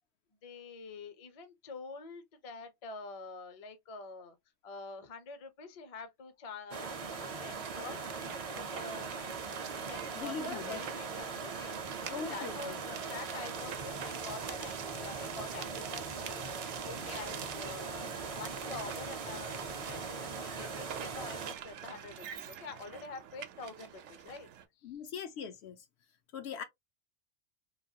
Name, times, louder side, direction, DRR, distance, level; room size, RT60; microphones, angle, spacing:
voice 1, 0.4-4.4 4.6-8.0 8.5-9.1 9.8-11.8 12.1-24.5 24.8-24.9 26.6-26.7, left 4 dB, 40° left, 0.6 m, -46 dB
sound 1, 6.7-21.5, right 4 dB, 40° right, 0.5 m, -40 dB
sound 2, 7.4-24.6, right 9 dB, 80° right, 0.9 m, -46 dB
voice 2, 10.1-10.8 12.1-12.8 24.8-25.8 26.3-26.6, left 6 dB, 70° left, 0.8 m, -40 dB
3.1 x 2.2 x 2.7 m
omnidirectional pair, 1.2 m